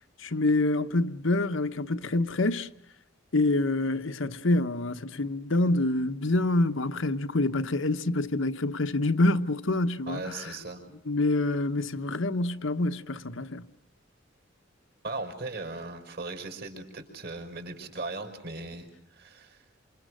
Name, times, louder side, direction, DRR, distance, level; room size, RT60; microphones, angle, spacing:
voice 1, 0.2-2.7 3.3-10.5 11.1-13.6, left 2 dB, 65° left, 1.1 m, -26 dB
voice 2, 10.1-10.8 15.0-19.6, right 3 dB, 50° right, 5.3 m, -38 dB
28.0 x 28.0 x 6.4 m
head